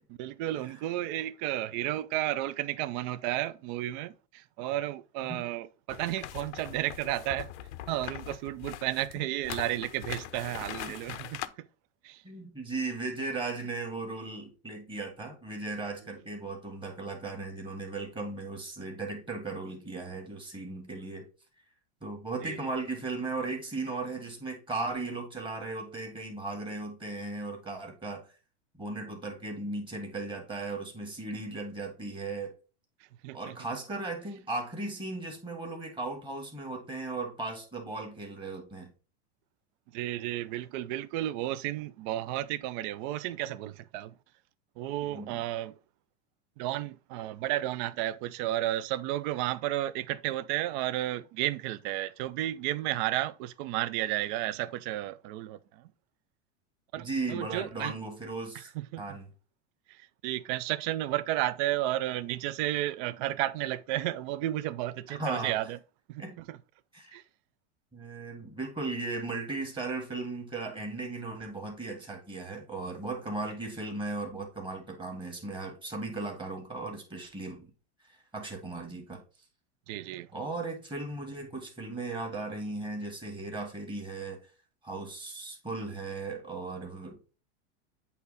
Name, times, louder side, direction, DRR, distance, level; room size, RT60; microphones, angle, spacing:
voice 1, 0.1-7.5 7.9-11.7 12.0-12.2 22.4-22.6 33.2-33.6 39.9-44.1 44.8-45.8 46.6-55.9 56.9-57.9 58.5-59.2 59.9-65.8 66.1-66.6 67.1-67.2 79.9-80.3, right 14 dB, 45° right, 0.4 m, -33 dB
sound 1, 5.9-11.5, left 13 dB, 80° left, 0.6 m, -41 dB
voice 2, 12.2-21.2 22.0-28.2 28.8-32.5 33.3-38.9 45.0-45.4 57.0-58.7 59.0-59.3 65.1-65.6 66.2-66.4 66.9-67.2 67.9-77.7 78.1-79.2 80.3-84.4 84.8-87.4, right 3 dB, 15° right, 1.6 m, -37 dB
8.3 x 2.8 x 4.0 m
supercardioid pair, 140°, 34 cm